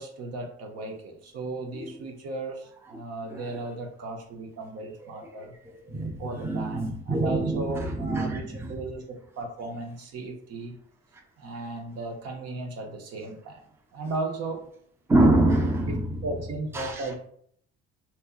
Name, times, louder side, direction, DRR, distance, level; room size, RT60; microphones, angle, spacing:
voice 1, 0.0-5.5 6.2-10.8 11.4-13.6 13.9-14.7 15.9-17.2, right 2 dB, 50° right, 0.9 m, -36 dB
voice 2, 5.9-8.7 15.1-16.2 16.7-17.0, right 1 dB, 10° right, 0.6 m, -25 dB
3.3 x 2.9 x 2.4 m
hypercardioid pair, 55°, 32 cm